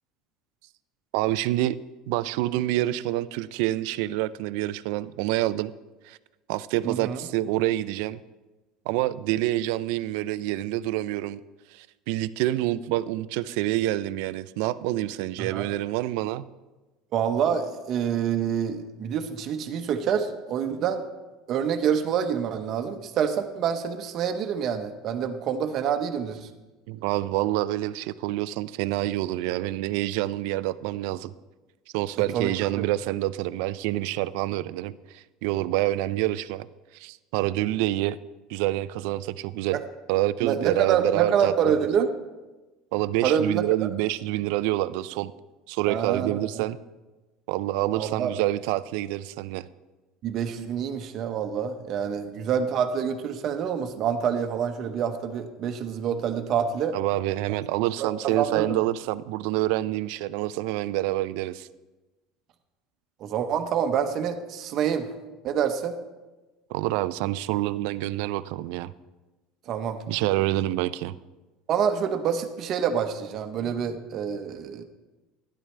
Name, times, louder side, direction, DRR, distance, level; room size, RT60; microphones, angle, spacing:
voice 1, 1.1-1.8 2.1-5.7 6.0-6.2 6.5-8.2 8.9-11.4 11.7-16.5 26.9-31.3 31.9-36.7 36.9-38.2 38.5-39.8 40.1-41.8 42.9-45.3 45.7-46.8 47.5-49.7 56.9-61.7 66.7-68.9 70.1-71.1, right 16 dB, 75° right, 16 dB, 0.4 m, -27 dB
voice 2, 6.8-7.2 15.4-15.7 17.1-21.0 21.5-26.5 32.3-32.8 39.7-39.8 40.4-42.1 43.2-43.6 45.9-46.7 47.9-48.3 50.2-57.0 58.0-58.8 63.2-65.1 65.4-66.0 69.7-70.0 71.7-74.8, right 8 dB, 45° right, 7 dB, 0.9 m, -27 dB
12.5 x 11.0 x 3.3 m, 1.2 s
cardioid pair, 135°, 0 cm